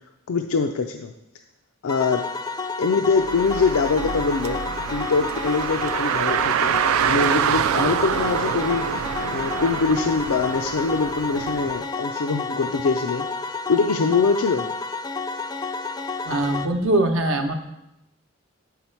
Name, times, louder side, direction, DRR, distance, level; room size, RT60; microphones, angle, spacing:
voice 1, 0.3-1.1 1.8-2.3 2.8-8.9 9.3-13.3 13.7-14.7, left 4 dB, 85° left, 5 dB, 0.4 m, -23 dB
sound 1, 1.9-16.7, left 4 dB, 20° left, 0.3 m, -30 dB
Car, 3.2-11.8, right 9 dB, 85° right, 0.3 m, -26 dB
voice 2, 16.2-17.6, right 1 dB, 70° right, 5 dB, 0.8 m, -22 dB
8.2 x 5.7 x 4.4 m, 0.89 s
head